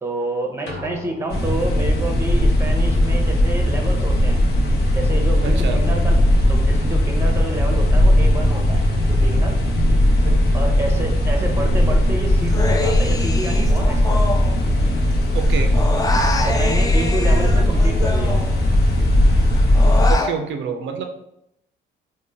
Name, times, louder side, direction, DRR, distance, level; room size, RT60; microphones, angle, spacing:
voice 1, 0.0-4.4 4.9-6.2 6.4-9.6 10.5-14.2 16.4-18.4, right 2 dB, 10° right, 2 dB, 0.7 m, -28 dB
sound 1, 0.7-2.1, left 3 dB, 90° left, 0.6 m, -38 dB
sound 2, 1.3-20.1, left 1 dB, 55° left, 0.8 m, -17 dB
voice 2, 5.4-5.8 10.2-10.4 15.3-15.8 20.1-21.0, right 6 dB, 70° right, 5 dB, 0.4 m, -27 dB
Human voice, 12.5-15.1 15.4-18.9 19.3-20.4, left 2 dB, 20° left, 0.3 m, -26 dB
3.8 x 2.1 x 3.3 m, 0.81 s
cardioid pair, 90°, 20 cm